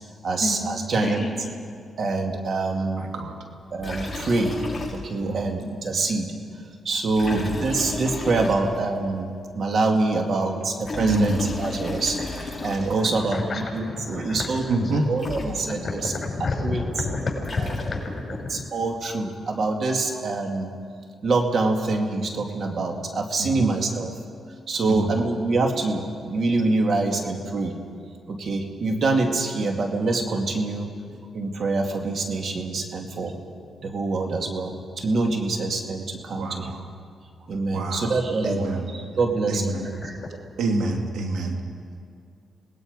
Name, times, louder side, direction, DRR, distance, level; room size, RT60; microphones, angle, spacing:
voice 1, 0.2-1.3 2.0-3.1 3.7-4.6 4.9-6.3 6.8-16.1 16.6-17.1 17.6-17.7 18.5-20.7 21.2-24.1 24.7-27.7 28.3-30.9 31.3-33.4 33.8-36.7 37.5-40.2, right 3 dB, 60° right, 3 dB, 2.4 m, -25 dB
voice 2, 0.9-1.3 13.0-15.4 15.7-18.6 39.5-39.6 40.0-40.3, left 3 dB, 35° left, -1 dB, 6.3 m, -31 dB
voice 3, 3.0-3.3 5.2-5.5 7.2-7.5 11.0-11.4 14.7-15.1 23.4-23.7 24.9-25.1 36.4-36.8 37.7-38.1 38.4-38.8 39.5-39.7 40.6-41.6, right 2 dB, 90° right, 2 dB, 2.3 m, -26 dB
Liquid, 3.8-5.3 5.6-5.7 7.1-9.0 10.6-13.3 14.9-15.0 15.2-16.0 17.2-18.3, left 3 dB, 15° left, 7.6 m, -33 dB
27.0 x 20.0 x 5.3 m, 2.3 s
cardioid pair, 75°, 0 cm